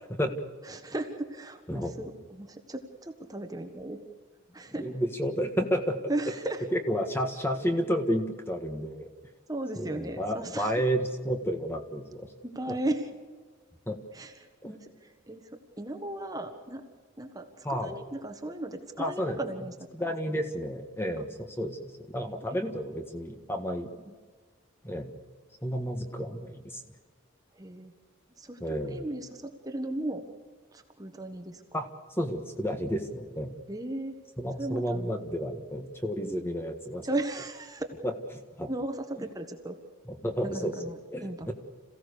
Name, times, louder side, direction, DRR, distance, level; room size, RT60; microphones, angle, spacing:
voice 1, 0.7-4.0 4.5-4.9 6.1-6.6 9.5-10.8 12.4-13.1 14.1-15.5 15.8-16.8 17.2-20.1 22.3-22.4 27.6-27.9 28.4-30.3 30.7-31.6 33.7-34.1 34.6-35.0 37.0-37.9 38.7-39.8 40.4-41.5, right 1 dB, 15° right, 6 dB, 1.4 m, -36 dB
voice 2, 4.8-6.0 6.7-9.1 9.7-12.3 12.7-12.8 13.9-14.0 14.6-14.7 17.6-18.0 19.0-19.4 19.9-23.9 24.8-25.1 25.6-26.8 28.6-29.0 31.7-31.9 32.2-33.5 34.4-37.0 38.0-38.1 38.6-38.7 40.1-41.5, equal, 10° left, 5 dB, 1.6 m, -31 dB
27.5 x 16.0 x 6.8 m, 1.5 s
head